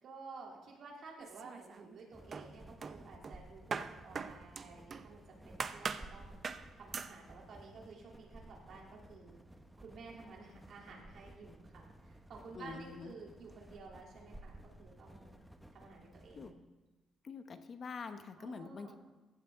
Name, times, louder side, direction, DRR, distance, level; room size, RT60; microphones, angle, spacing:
voice 1, 0.0-6.4 6.7-9.4 9.8-15.4 15.7-16.6 18.4-19.0, right 4 dB, 65° right, -2 dB, 3.5 m, -53 dB
sound 1, 1.2-2.0 2.3-5.1 5.6-6.1 6.4-6.7 6.9-7.2, right 5 dB, 45° right, 0.7 m, -41 dB
sound 2, 2.1-16.5, right 1 dB, 10° right, 1.1 m, -56 dB
voice 2, 12.5-13.1 16.3-16.5 17.2-18.9, left 5 dB, 50° left, 8 dB, 1.0 m, -45 dB
15.0 x 8.4 x 3.9 m, 1.1 s
cardioid pair, 90°, 0 cm